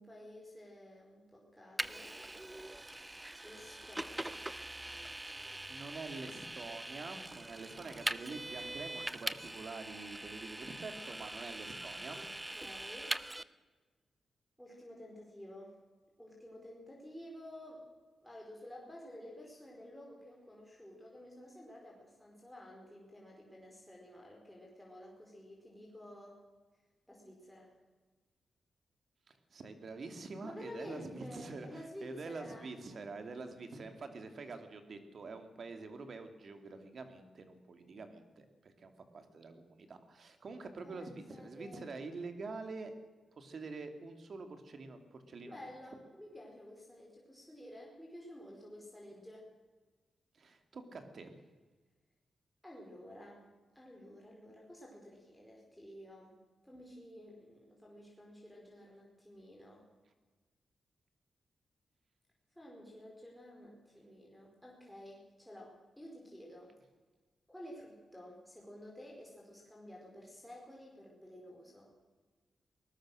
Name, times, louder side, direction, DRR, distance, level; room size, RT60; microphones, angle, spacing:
voice 1, 0.0-2.2 3.4-4.5 12.1-13.2 14.6-15.8 16.2-17.9 18.2-26.4 27.1-27.7 30.4-32.7 40.8-41.9 45.5-49.5 52.6-53.5 53.7-56.4 56.6-59.9 62.5-66.8 67.5-71.9, equal, 5° left, -2 dB, 4.8 m, -52 dB
Vehicle, 1.8-13.4, right 1 dB, 10° right, 0.7 m, -42 dB
voice 2, 5.3-12.2 29.3-42.9 43.4-45.6 50.3-51.3, right 3 dB, 60° right, 7 dB, 2.6 m, -46 dB
21.5 x 19.0 x 6.4 m, 1.3 s
cardioid pair, 100°, 0 cm